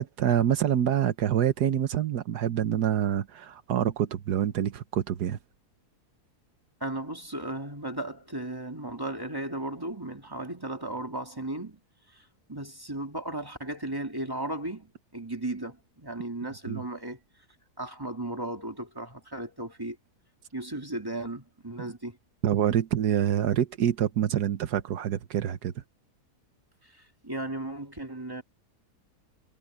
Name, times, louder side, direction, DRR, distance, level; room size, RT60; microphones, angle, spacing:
voice 1, 0.0-5.4 16.7-16.8 22.4-25.7, right 10 dB, 85° right, 1.5 m, -26 dB
voice 2, 6.8-11.8 12.1-17.2 17.8-20.0 20.5-22.2 26.8-28.4, right 1 dB, 15° right, 2.1 m, -35 dB
omnidirectional pair, 1.7 m